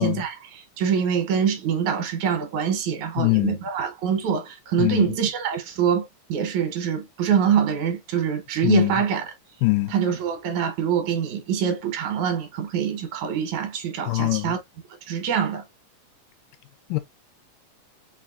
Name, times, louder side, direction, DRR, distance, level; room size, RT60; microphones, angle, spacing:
voice 1, 0.0-9.3 9.9-14.6 15.1-15.6, right 8 dB, 70° right, 2.2 m, -25 dB
voice 2, 3.2-3.5 4.8-5.1 8.6-8.9 9.6-9.9 14.1-14.5 16.9-17.0, left 22 dB, 85° left, 2.1 m, -22 dB
5.2 x 3.2 x 2.4 m
omnidirectional pair, 3.8 m